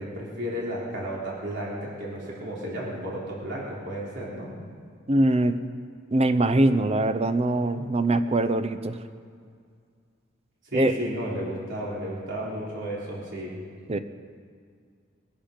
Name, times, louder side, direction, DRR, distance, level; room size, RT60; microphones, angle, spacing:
voice 1, 0.0-4.5 10.6-13.6, equal, 60° right, -6 dB, 3.5 m, -33 dB
voice 2, 5.1-5.6 6.1-9.0 10.7-11.0 13.9-14.0, right 2 dB, 30° right, 11 dB, 0.6 m, -22 dB
22.5 x 11.5 x 5.1 m, 2.2 s
head